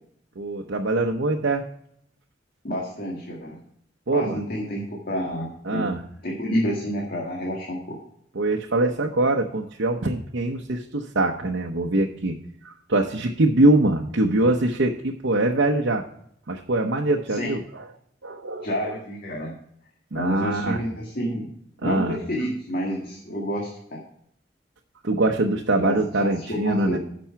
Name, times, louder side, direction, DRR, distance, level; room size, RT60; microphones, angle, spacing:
voice 1, 0.4-1.6 4.1-4.4 5.7-6.0 8.3-12.3 12.6-16.0 16.5-17.8 18.2-18.9 20.1-20.8 21.8-22.2 25.0-27.0, right 2 dB, 80° right, 1 dB, 0.8 m, -23 dB
voice 2, 2.6-3.6 4.1-5.8 6.2-8.0 17.3-17.5 18.6-19.5 20.2-21.5 21.8-24.0 25.8-27.0, equal, 55° left, -2 dB, 1.9 m, -29 dB
10.5 x 6.2 x 5.7 m, 0.69 s
head